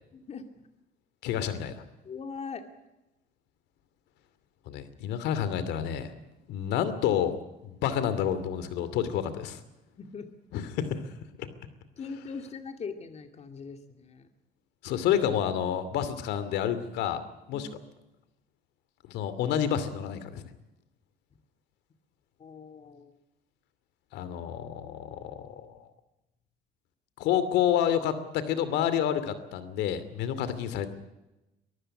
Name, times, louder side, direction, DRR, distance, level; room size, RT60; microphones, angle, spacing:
voice 1, 0.1-0.4 2.0-2.7 10.0-10.3 12.0-14.3 17.5-17.7 22.4-23.2, left 5 dB, 40° left, 6 dB, 2.4 m, -41 dB
voice 2, 1.2-1.7 4.7-6.1 6.5-7.4 7.6-9.6 10.5-11.0 14.8-17.2 17.5-17.7 19.1-20.4 24.1-25.9 27.2-30.9, left 9 dB, 85° left, 13 dB, 2.7 m, -29 dB
23.5 x 15.0 x 9.8 m, 0.97 s
cardioid pair, 110°, 17 cm